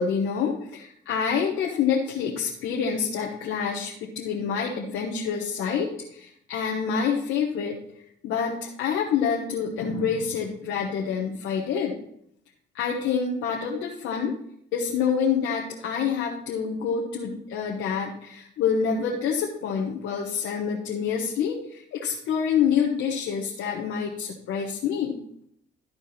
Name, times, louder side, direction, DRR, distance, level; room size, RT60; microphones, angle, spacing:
voice 1, 0.0-7.8 8.2-11.9 12.7-14.3 14.7-25.2, left 6 dB, 85° left, -1 dB, 1.2 m, -27 dB
12.5 x 4.6 x 4.3 m, 0.70 s
cardioid pair, 90°, 20 cm